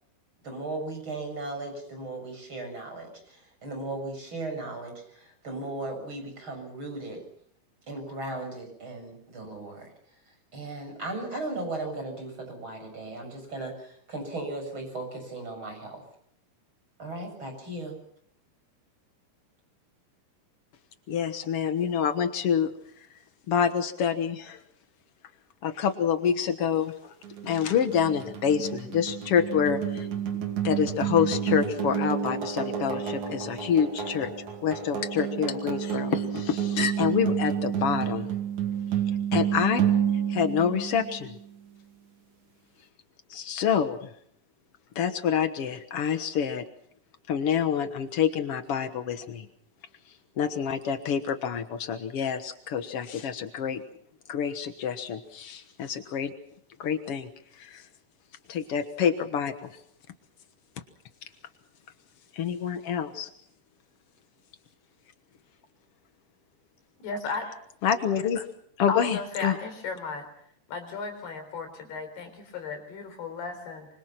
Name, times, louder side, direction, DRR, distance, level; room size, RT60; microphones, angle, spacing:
voice 1, 0.4-7.2 7.9-9.9 10.5-16.0 17.0-18.0, right 2 dB, 30° right, 4 dB, 7.7 m, -36 dB
voice 2, 21.1-22.7 23.5-24.6 25.6-27.1 27.4-30.1 30.6-34.3 34.6-38.3 39.3-39.8 40.3-41.4 43.3-44.1 44.9-46.6 47.3-49.5 50.4-53.8 54.3-56.3 56.8-57.3 57.6-57.8 58.5-59.7 62.3-63.3 67.8-68.4 68.8-69.5, left 8 dB, 90° left, 9 dB, 1.2 m, -27 dB
sound 1, 27.2-41.4, right 8 dB, 50° right, 3.6 m, -30 dB
voice 3, 67.0-67.5 68.9-70.3 70.7-73.9, left 4 dB, 70° left, 8 dB, 6.1 m, -35 dB
25.5 x 25.5 x 6.0 m, 0.67 s
omnidirectional pair, 4.7 m